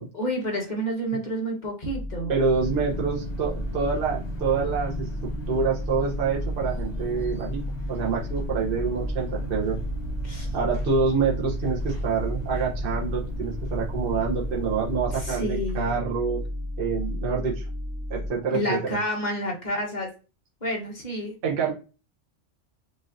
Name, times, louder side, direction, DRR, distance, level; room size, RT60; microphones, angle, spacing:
voice 1, 0.1-2.3 10.2-10.5 15.2-16.0 18.5-20.1 20.6-21.3, equal, 40° left, 0 dB, 1.2 m, -29 dB
sound 1, 1.8-18.3, left 1 dB, 10° right, 0.8 m, -33 dB
voice 2, 2.3-5.1 5.5-7.6 7.9-9.8 10.5-16.4 16.8-17.7 18.1-19.0 21.4-21.7, right 5 dB, 50° right, -2 dB, 1.0 m, -27 dB
sound 2, 2.5-15.3, right 1 dB, 65° left, 1.4 m, -35 dB
5.0 x 2.6 x 2.6 m, 0.32 s
omnidirectional pair, 1.2 m